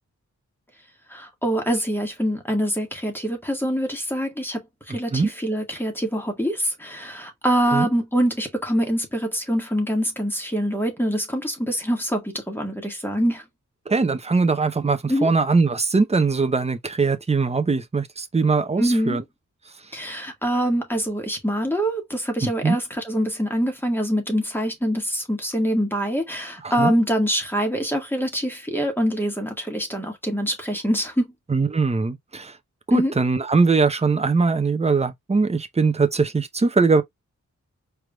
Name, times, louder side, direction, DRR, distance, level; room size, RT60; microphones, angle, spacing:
voice 1, 1.1-4.6 4.9-13.4 15.1-15.3 18.8-19.2 19.9-31.3 32.9-33.1, equal, 5° left, 1.7 m, -24 dB
voice 2, 4.9-5.3 7.7-7.9 13.9-19.2 22.4-22.8 26.6-26.9 31.5-32.5 32.9-37.0, right 4 dB, 20° right, 0.7 m, -21 dB
4.6 x 3.5 x 2.3 m
wide cardioid pair, 100°, 30 cm